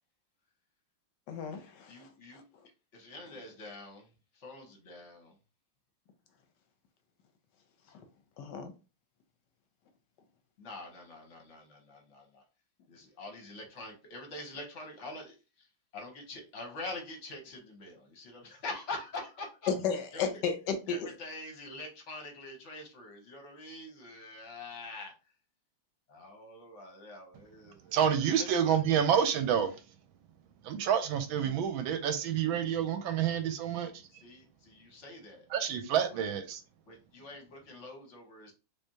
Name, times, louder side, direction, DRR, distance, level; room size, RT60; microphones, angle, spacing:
voice 1, 1.3-2.4 8.4-8.7 19.7-21.1, left 6 dB, 70° left, 1.1 m, -33 dB
voice 2, 1.9-2.4 2.9-4.1 4.3-5.3 10.6-12.4 12.9-15.7 15.9-19.7 20.1-20.4 20.9-25.1 26.1-28.0 28.3-28.5 33.7-35.5 36.1-36.3 36.9-38.5, left 2 dB, 50° left, 0.9 m, -45 dB
voice 3, 27.9-29.7 30.6-33.9 35.5-36.6, right 8 dB, 75° right, 1.3 m, -28 dB
3.7 x 3.3 x 2.7 m
omnidirectional pair, 2.3 m